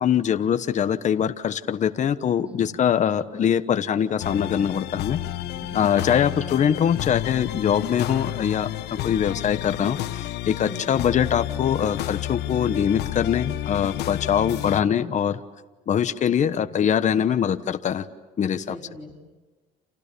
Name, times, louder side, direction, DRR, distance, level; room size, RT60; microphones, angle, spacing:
voice 1, 0.0-5.2 5.7-8.7 9.0-15.4 15.9-18.0 18.4-18.8, left 8 dB, 45° left, 10 dB, 1.2 m, -23 dB
voice 2, 2.4-3.0 5.5-6.2 10.7-11.0 18.6-19.3, equal, 5° right, 1 dB, 4.4 m, -44 dB
sound 1, 4.2-14.8, left 14 dB, 80° left, 1.2 m, -31 dB
30.0 x 28.5 x 7.0 m, 1.3 s
cardioid pair, 110°, 17 cm